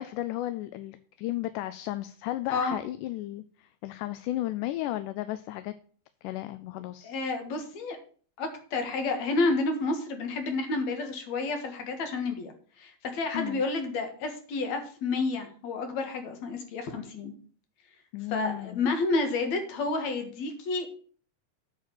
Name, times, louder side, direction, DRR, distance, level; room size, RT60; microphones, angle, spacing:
voice 1, 0.0-5.7 6.2-7.2 13.3-13.6 18.1-18.8, left 15 dB, 80° left, 12 dB, 2.0 m, -34 dB
voice 2, 7.0-8.0 8.4-17.3 18.3-20.9, left 3 dB, 60° left, 5 dB, 2.7 m, -30 dB
8.6 x 4.9 x 7.2 m, 0.44 s
omnidirectional pair, 3.9 m